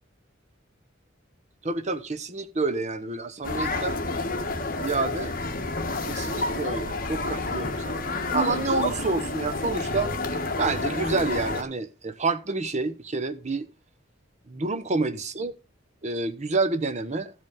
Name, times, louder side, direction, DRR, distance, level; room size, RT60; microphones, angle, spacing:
voice 1, 1.6-4.0 4.8-5.3 6.1-8.0 8.3-10.1 10.6-13.7 14.5-15.5 16.0-17.3, right 3 dB, 35° right, 0.9 m, -28 dB
sound 1, 3.4-11.6, left 2 dB, 45° left, 1.2 m, -29 dB
14.0 x 5.3 x 5.4 m
head